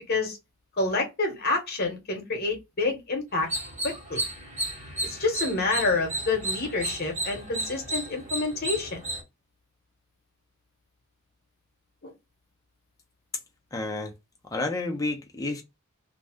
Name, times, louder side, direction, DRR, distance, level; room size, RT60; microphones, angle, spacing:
voice 1, 0.8-3.5 3.8-4.2 5.0-9.0 12.0-12.1, left 3 dB, 45° left, 1.0 m, -28 dB
sound 1, 3.4-9.2, right 1 dB, 35° right, 1.3 m, -33 dB
voice 2, 13.7-14.1 14.5-15.6, left 2 dB, 15° left, 0.6 m, -30 dB
2.6 x 2.2 x 3.4 m
head